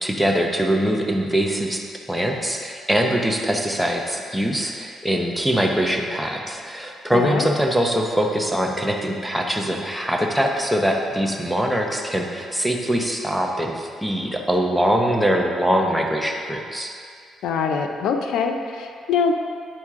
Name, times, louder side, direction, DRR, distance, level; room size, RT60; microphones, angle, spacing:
voice 1, 0.0-16.9, equal, ahead, 1 dB, 0.8 m, -23 dB
voice 2, 7.1-7.5 17.4-19.3, left 5 dB, 80° left, 4 dB, 0.6 m, -23 dB
9.6 x 4.3 x 3.7 m, 2.3 s
cardioid pair, 90°, 0 cm